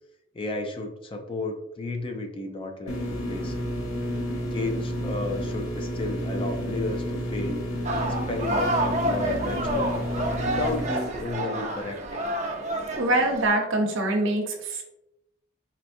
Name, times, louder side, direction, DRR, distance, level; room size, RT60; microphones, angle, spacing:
voice 1, 0.3-3.7 4.4-7.7 8.0-10.0 10.5-12.3, left 2 dB, 25° left, 4 dB, 0.4 m, -33 dB
sound 1, 2.9-10.9, equal, 80° left, 0.9 m, -31 dB
sound 2, 7.8-13.5, right 1 dB, 35° right, 0.5 m, -29 dB
voice 2, 12.9-14.8, right 1 dB, 75° right, 2 dB, 0.9 m, -24 dB
4.4 x 3.4 x 2.6 m, 0.86 s
head